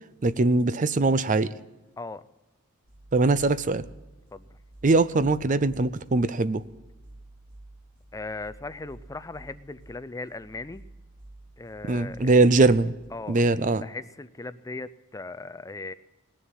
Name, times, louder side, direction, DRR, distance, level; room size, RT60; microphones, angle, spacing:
voice 1, 0.2-1.5 3.1-3.8 4.8-6.6 11.9-12.9 13.3-13.8, right 3 dB, 35° right, 16 dB, 0.5 m, -21 dB
sound 1, 2.8-13.1, right 2 dB, 80° right, 4.2 m, -51 dB
voice 2, 8.1-10.8 11.6-12.4 13.1-13.4 13.8-15.9, left 3 dB, 15° left, 14 dB, 0.4 m, -38 dB
19.5 x 7.1 x 9.1 m, 1.1 s
head